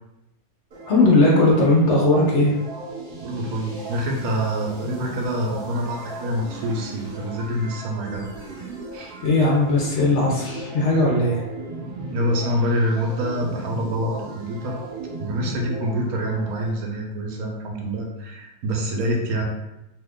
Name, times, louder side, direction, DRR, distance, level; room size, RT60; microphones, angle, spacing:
sound 1, 0.7-16.7, right 3 dB, 50° right, 0.7 m, -37 dB
voice 1, 0.9-2.5 9.2-11.4, left 2 dB, 60° left, -4 dB, 0.9 m, -18 dB
voice 2, 3.2-8.3 8.9-9.2 12.1-14.8 15.2-19.4, equal, 75° right, 0 dB, 1.1 m, -26 dB
2.8 x 2.4 x 3.5 m, 0.92 s
omnidirectional pair, 1.6 m